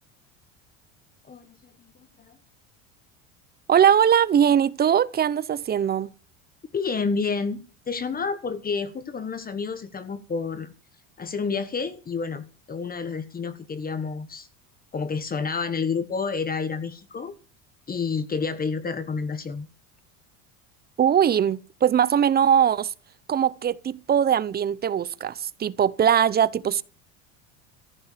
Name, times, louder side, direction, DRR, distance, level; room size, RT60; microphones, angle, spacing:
voice 1, 1.3-1.9 2.2-2.4 6.7-10.7 11.2-14.5 14.9-17.3 17.9-19.7, left 5 dB, 25° left, 1.3 m, -29 dB
voice 2, 3.7-6.1 21.0-22.9 23.3-26.8, right 9 dB, 25° right, 0.7 m, -21 dB
14.5 x 10.0 x 6.7 m
supercardioid pair, 120°, 37 cm